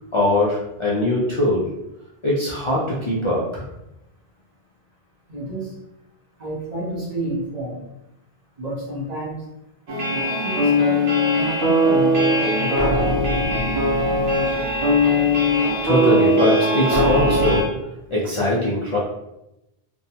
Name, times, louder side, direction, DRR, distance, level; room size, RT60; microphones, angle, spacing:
voice 1, 0.1-1.6 2.2-3.7 15.8-17.8 18.1-19.0, left 1 dB, 50° left, -6 dB, 0.3 m, -21 dB
voice 2, 5.3-5.7 6.4-7.8 8.6-9.4 10.1-11.0 11.4-12.8, right 1 dB, 45° right, -6 dB, 0.9 m, -30 dB
sound 1, 9.9-17.6, left 1 dB, 80° right, 1.0 m, -19 dB
2.6 x 2.2 x 2.7 m, 0.89 s
omnidirectional pair, 1.0 m